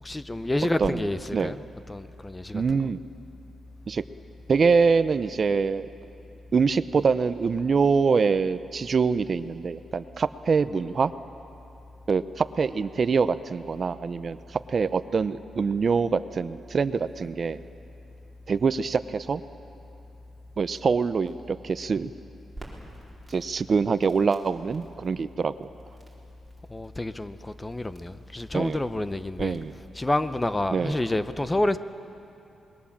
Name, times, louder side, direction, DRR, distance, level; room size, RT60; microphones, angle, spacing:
voice 1, 0.0-1.6 1.9-2.8 26.7-29.6 30.0-31.8, left 1 dB, 15° left, 12 dB, 0.7 m, -28 dB
voice 2, 2.5-3.0 3.9-4.0 4.5-5.9 6.5-11.1 12.1-17.6 18.5-19.4 20.6-22.1 23.3-25.7 28.5-28.8 29.4-29.7 30.7-31.0, right 5 dB, 40° right, 13 dB, 0.6 m, -24 dB
Crackle, 22.5-29.8, right 1 dB, ahead, 4.5 m, -52 dB
26.5 x 21.0 x 7.3 m, 2.7 s
cardioid pair, 125°, 0 cm